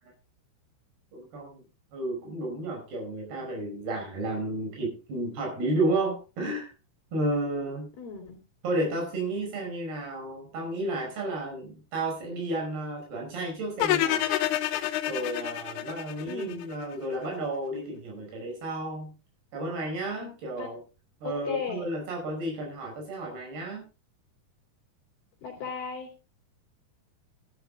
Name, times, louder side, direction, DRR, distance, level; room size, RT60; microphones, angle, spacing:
voice 1, 1.1-1.6 1.9-6.7 7.1-7.9 8.6-14.3 15.1-19.1 19.5-20.8 21.2-23.9, right 2 dB, 70° right, 1 dB, 7.3 m, -32 dB
voice 2, 8.0-8.4 16.2-16.6 20.6-20.7 21.2-21.9 25.4-26.1, left 6 dB, 65° left, -1 dB, 5.0 m, -35 dB
sound 1, 13.8-16.9, left 13 dB, 85° left, 2.8 m, -28 dB
12.5 x 11.5 x 3.8 m, 0.31 s
omnidirectional pair, 4.8 m